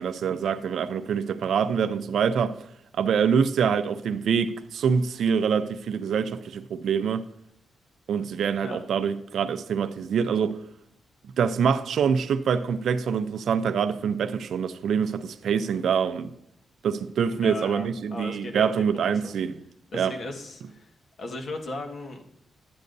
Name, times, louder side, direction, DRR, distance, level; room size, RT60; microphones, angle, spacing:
voice 1, 0.0-2.5 3.0-7.3 8.1-10.6 11.4-16.3 16.8-19.5 19.9-20.1, right 7 dB, 75° right, 0.5 m, -25 dB
voice 2, 17.3-19.3 19.9-20.9 21.2-22.2, left 2 dB, 55° left, 1.6 m, -36 dB
11.5 x 9.4 x 2.7 m
cardioid pair, 110°, 0 cm